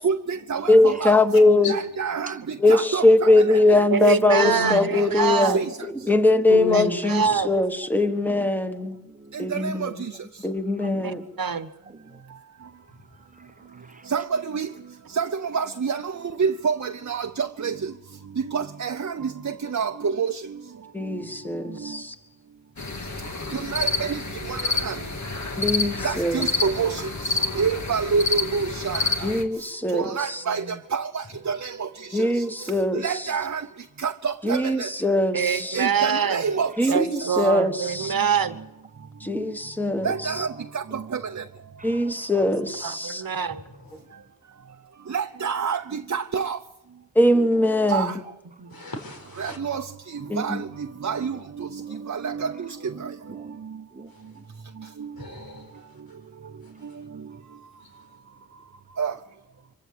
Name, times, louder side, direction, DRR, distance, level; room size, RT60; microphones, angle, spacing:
voice 1, 0.0-1.2 1.6-3.8 4.6-5.8 9.3-10.2 14.1-14.7 15.1-17.9 18.4-20.6 21.1-21.2 21.8-22.0 23.5-25.1 26.0-29.3 29.9-33.7 34.0-34.9 35.5-37.1 37.3-37.5 39.3-39.5 40.0-41.4 45.1-46.6 47.9-48.2 49.4-53.8 55.0-55.1 57.0-57.2 59.0-59.2, right 6 dB, 55° right, 0.8 m, -28 dB
voice 2, 0.7-1.8 2.6-5.6 5.8-8.9 9.4-9.9 10.4-11.2 20.9-22.1 25.6-26.4 29.2-30.4 32.1-33.0 34.4-35.8 36.8-38.1 39.2-40.1 41.8-43.2 47.1-48.1 50.3-50.6, left 2 dB, 5° left, 1.6 m, -21 dB
voice 3, 1.4-1.7 4.4-4.9 6.5-7.0 22.9-23.0 48.7-49.6 55.2-55.7, left 3 dB, 80° left, 5.0 m, -31 dB
voice 4, 2.8-3.1 3.5-3.6 4.9-5.1 5.5-5.6 6.0-6.6 7.2-7.4 8.3-8.5 9.0-9.4 10.8-11.2 11.9-12.2 13.3-14.1 32.9-33.0 35.8-35.9 36.3-36.6 41.8-42.3 47.3-47.9 51.9-52.1 53.0-53.6 53.9-54.5, right 3 dB, 25° right, 1.0 m, -43 dB
voice 5, 3.9-5.7 6.7-7.6 11.0-11.7 26.8-27.0 30.0-30.2 30.5-30.8 35.3-36.4 36.9-38.6 42.3-42.5 42.8-43.6 48.6-48.8, right 6 dB, 80° right, 1.2 m, -25 dB
sound 1, 22.8-29.4, left 3 dB, 55° left, 2.1 m, -28 dB
25.5 x 15.5 x 8.0 m
wide cardioid pair, 90°, 35 cm